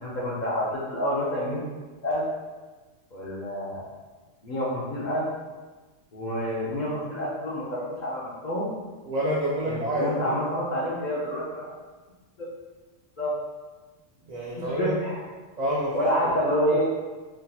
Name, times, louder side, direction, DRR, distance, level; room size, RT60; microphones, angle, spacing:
voice 1, 0.0-1.6 2.0-2.2 3.1-3.9 4.4-5.2 6.1-8.7 9.6-11.7 12.4-12.5 13.2-13.4 14.8-15.2 15.9-16.9, equal, 50° left, -7 dB, 0.5 m, -28 dB
voice 2, 9.1-10.3 14.2-14.9 15.6-16.1, equal, 80° right, -6 dB, 0.3 m, -28 dB
3.5 x 2.7 x 2.2 m, 1.3 s
omnidirectional pair, 1.3 m